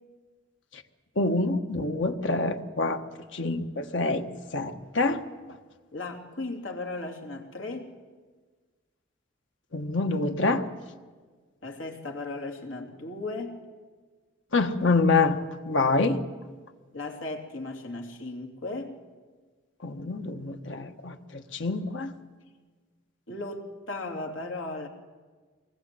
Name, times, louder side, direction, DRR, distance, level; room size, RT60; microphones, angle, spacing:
voice 1, 1.2-3.0 3.3-4.2 4.5-5.2 9.7-10.7 14.5-15.4 15.6-16.2 19.8-22.1, left 3 dB, 70° left, 6 dB, 1.5 m, -26 dB
voice 2, 5.9-7.9 11.6-13.6 16.9-19.0 23.3-24.9, left 2 dB, 85° left, 2 dB, 3.2 m, -36 dB
25.0 x 20.5 x 7.8 m, 1.4 s
head